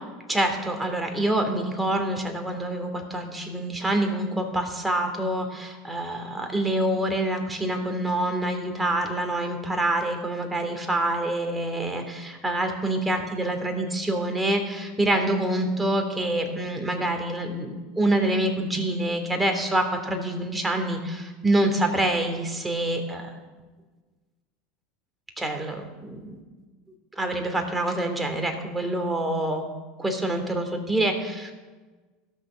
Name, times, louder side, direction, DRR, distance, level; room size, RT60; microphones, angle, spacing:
voice 1, 0.3-23.3 25.4-26.4 27.2-29.7 30.0-31.5, right 1 dB, 10° right, 4 dB, 2.7 m, -26 dB
16.5 x 6.8 x 6.3 m, 1.3 s
hypercardioid pair, 85°, 0 cm